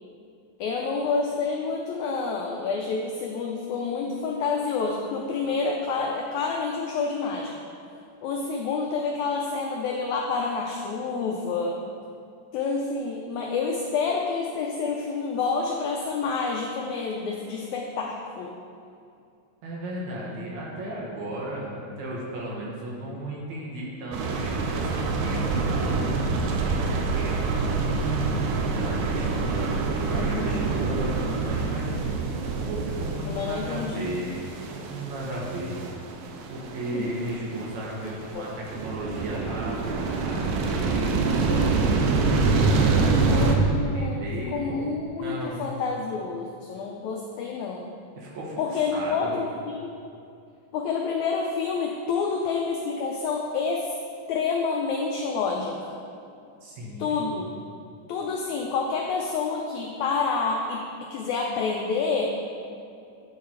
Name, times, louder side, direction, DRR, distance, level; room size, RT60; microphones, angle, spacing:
voice 1, 0.6-7.5 8.2-11.8 12.5-18.6 30.2-30.7 33.3-34.0 36.9-37.0 38.3-38.5 43.3-47.9 48.6-49.9 50.7-53.9 54.3-56.0 57.0-57.5 58.1-62.3, left 4 dB, 85° left, 0 dB, 1.6 m, -28 dB
voice 2, 19.6-27.9 28.7-32.0 32.7-34.4 34.7-35.7 36.5-40.5 40.8-41.8 42.6-44.8 45.2-45.8 48.2-49.3 56.6-57.2, right 1 dB, 65° right, -4 dB, 2.1 m, -35 dB
sound 1, 24.1-43.5, right 4 dB, 85° right, 2.2 m, -26 dB
9.4 x 3.8 x 4.2 m, 2.5 s
omnidirectional pair, 3.9 m